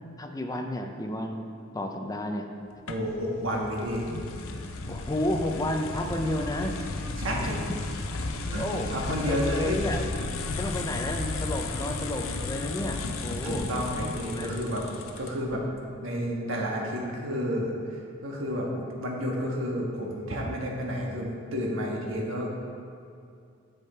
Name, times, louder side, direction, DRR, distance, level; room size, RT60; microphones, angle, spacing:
voice 1, 0.2-1.4 1.7-2.5 4.9-6.7 7.4-7.5 8.4-10.0 10.6-13.6 14.3-14.5 18.7-18.9, left 1 dB, 15° left, 4 dB, 0.6 m, -32 dB
sound 1, 2.9-15.6, left 3 dB, 75° left, 0.6 m, -34 dB
voice 2, 2.9-4.1 7.2-7.6 8.5-9.8 13.4-14.8 15.2-15.6 16.0-17.7 18.2-18.7 19.0-22.5, equal, 70° right, -1 dB, 1.4 m, -30 dB
7.6 x 6.6 x 4.3 m, 2.4 s
head